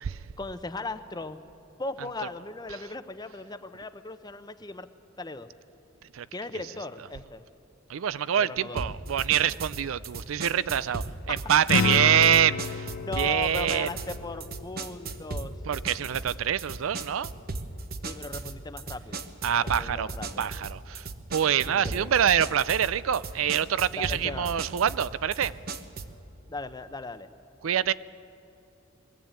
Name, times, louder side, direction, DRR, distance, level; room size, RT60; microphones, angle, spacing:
voice 1, 0.4-1.4 1.8-4.9 5.2-5.5 6.3-7.4 8.4-8.9 11.3-11.4 13.0-15.6 18.0-19.2 19.5-20.5 21.7-22.1 24.0-24.5 26.5-27.3, left 2 dB, 20° left, 11 dB, 0.7 m, -37 dB
voice 2, 7.9-12.9 13.2-13.9 15.7-17.3 19.4-20.1 20.4-21.1 21.3-25.5 27.6-27.9, right 9 dB, 85° right, 18 dB, 0.4 m, -25 dB
sound 1, 8.8-26.2, right 3 dB, 50° right, 0.9 m, -37 dB
sound 2, 11.7-16.3, left 5 dB, 65° left, 0.4 m, -32 dB
21.5 x 15.0 x 8.9 m, 2.9 s
head